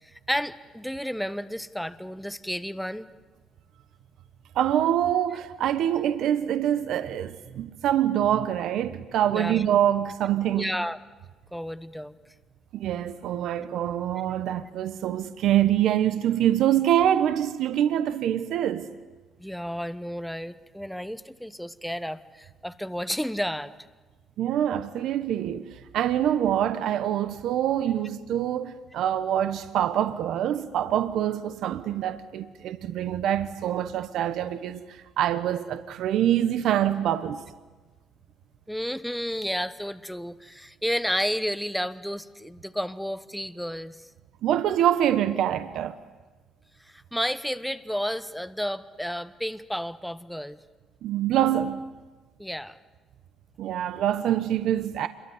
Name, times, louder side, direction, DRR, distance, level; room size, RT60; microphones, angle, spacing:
voice 1, 0.3-3.1 9.3-9.6 10.5-11.0 11.5-12.2 19.4-23.7 38.7-44.0 46.9-50.6 52.4-52.8, equal, ahead, 0.9 m, -31 dB
voice 2, 4.5-10.7 12.7-18.9 24.4-37.4 44.4-46.0 51.0-51.9 53.6-55.1, right 11 dB, 70° right, 1.1 m, -25 dB
27.0 x 23.0 x 9.6 m
cardioid pair, 100°, 0 cm